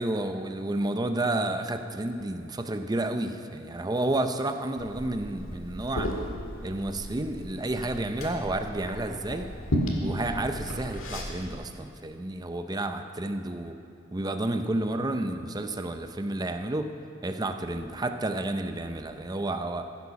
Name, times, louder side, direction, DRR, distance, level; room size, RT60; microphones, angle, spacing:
voice 1, 0.0-6.1 6.6-9.5 10.0-13.8 14.1-16.9 17.2-19.9, right 2 dB, 20° right, 7 dB, 0.5 m, -31 dB
Liquid, 4.8-11.5, equal, 75° left, 1.9 m, -34 dB
15.5 x 8.1 x 5.8 m, 2.7 s
head